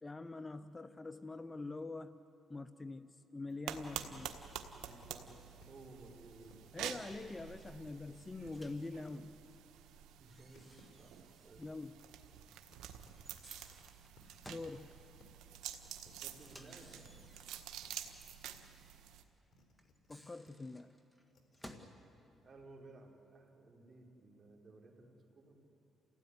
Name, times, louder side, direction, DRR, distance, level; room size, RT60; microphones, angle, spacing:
voice 1, 0.0-2.2 2.5-4.3 6.7-9.4 11.6-11.9 14.5-14.9 20.1-20.9, left 3 dB, 20° left, 12 dB, 0.7 m, -45 dB
sound 1, 3.5-3.6 3.8-4.5 4.8-6.8 7.0-9.3 10.3-11.1 12.3-13.1 13.6-14.9 15.2-15.6 15.8-18.6 18.9-20.1 20.4-20.7 21.3-21.7, left 1 dB, 50° left, 3.7 m, -66 dB
sound 2, 3.7-19.2, right 10 dB, 90° right, 1.5 m, -49 dB
voice 2, 4.7-5.4 5.7-6.7 10.2-10.7 11.0-11.2 11.4-11.6 12.6-12.7 16.0-17.0 22.4-25.6, right 2 dB, 35° right, 0 dB, 4.7 m, -57 dB
Microwave oven, 8.5-8.9 10.3-11.7 11.9-12.0 13.1-14.8 16.4-17.8 19.8-22.0, equal, ahead, 2.3 m, -58 dB
28.5 x 16.5 x 9.8 m, 2.9 s
cardioid pair, 90°, 0 cm